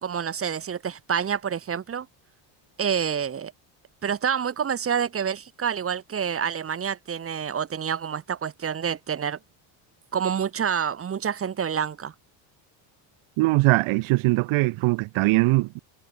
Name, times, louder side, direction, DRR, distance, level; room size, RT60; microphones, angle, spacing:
voice 1, 0.0-2.1 2.8-3.5 4.0-9.4 10.1-12.1, right 7 dB, 30° right, 2.0 m, -28 dB
voice 2, 13.4-15.8, right 22 dB, 85° right, 3.2 m, -21 dB
cardioid pair, 160°, 48 cm